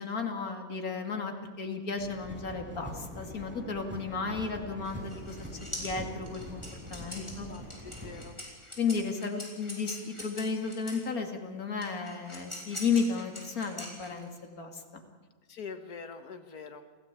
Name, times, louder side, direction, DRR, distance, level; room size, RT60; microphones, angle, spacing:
voice 1, 0.0-6.6 6.9-7.5 8.8-15.0, left 5 dB, 75° left, 4 dB, 2.9 m, -33 dB
sound 1, 2.0-8.3, equal, 5° right, 5.5 m, -44 dB
sound 2, 4.8-11.1 11.8-14.4, left 1 dB, 20° left, 5.5 m, -43 dB
voice 2, 6.9-8.4 15.5-16.8, left 5 dB, 90° left, 8 dB, 2.1 m, -45 dB
28.0 x 16.5 x 8.5 m, 1.4 s
omnidirectional pair, 1.6 m